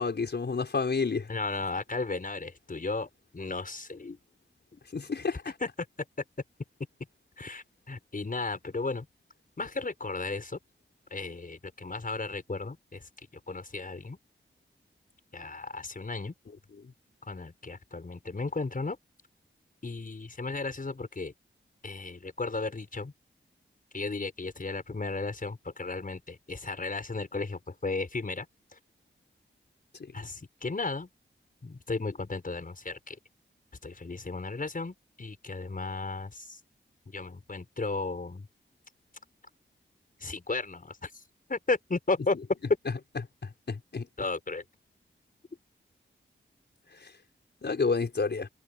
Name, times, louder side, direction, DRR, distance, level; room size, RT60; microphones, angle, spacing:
voice 1, 0.0-1.3 4.9-5.4 43.7-44.1 47.6-48.5, left 4 dB, 60° left, 5.2 m, -29 dB
voice 2, 1.3-4.2 4.7-4.8 5.6-5.7 7.4-9.1 9.6-10.6 11.1-13.0 13.5-14.2 15.3-16.3 17.2-19.0 19.8-21.3 21.8-23.1 23.9-28.5 28.7-28.8 30.1-31.1 31.6-33.2 33.8-36.6 37.1-38.5 40.2-41.2 41.5-42.4 44.2-44.6, left 3 dB, 45° left, 5.9 m, -34 dB
wide cardioid pair, 70°, 20 cm